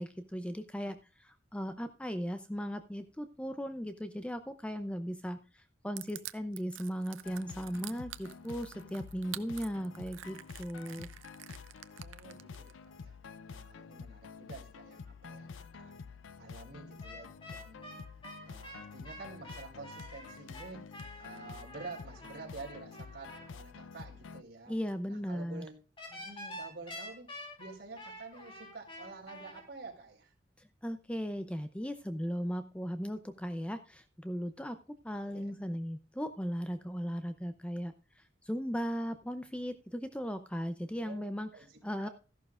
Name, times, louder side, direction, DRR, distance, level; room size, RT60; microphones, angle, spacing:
voice 1, 0.0-11.1 24.7-25.7 30.8-34.8 35.0-41.5 41.8-42.1, equal, 5° left, 9 dB, 0.5 m, -37 dB
Crushing, 6.0-12.7, right 13 dB, 90° right, 0.6 m, -46 dB
sound 1, 7.2-24.4, left 5 dB, 85° left, 0.5 m, -49 dB
voice 2, 12.0-13.2 13.5-18.1 18.4-20.8 21.2-24.8 25.1-25.8 26.1-27.3 27.6-30.3 35.2-35.6 40.9-42.1, right 3 dB, 55° right, 0 dB, 4.4 m, -49 dB
sound 2, 17.0-23.5 26.0-29.6, left 1 dB, 30° left, 3.6 m, -48 dB
14.0 x 11.5 x 2.4 m, 0.35 s
head